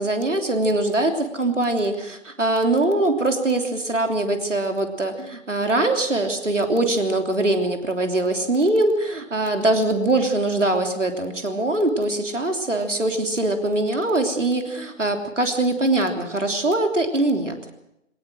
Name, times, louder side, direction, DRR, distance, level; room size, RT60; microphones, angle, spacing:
voice 1, 0.0-17.6, right 2 dB, 65° right, 4 dB, 3.3 m, -22 dB
23.5 x 19.0 x 6.3 m, 0.82 s
figure-of-eight pair, 160°, 39 cm